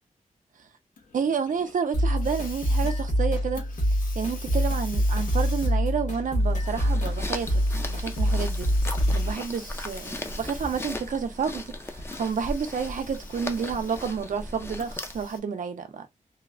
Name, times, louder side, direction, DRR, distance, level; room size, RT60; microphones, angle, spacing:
Hiss, 1.0-11.3 12.0-14.3 14.8-15.4, left 3 dB, 75° left, 0.8 m, -46 dB
voice 1, 1.1-3.7 4.2-7.6 7.9-8.7 9.1-16.1, right 6 dB, 70° right, 0.6 m, -30 dB
sound 1, 1.9-9.3, equal, 60° left, 1.4 m, -25 dB
sound 2, 6.3-15.4, left 1 dB, 15° left, 0.4 m, -37 dB
3.0 x 2.1 x 2.4 m
wide cardioid pair, 145°, 14 cm